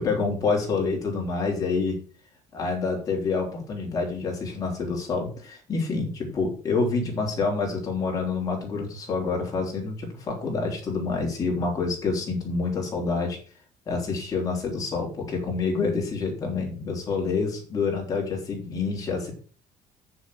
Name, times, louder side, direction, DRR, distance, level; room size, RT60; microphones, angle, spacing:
voice 1, 0.0-2.0 2.5-13.4 13.9-19.3, left 4 dB, 25° left, 0 dB, 3.5 m, -27 dB
7.7 x 7.0 x 6.2 m, 0.40 s
cardioid pair, 175°, 14 cm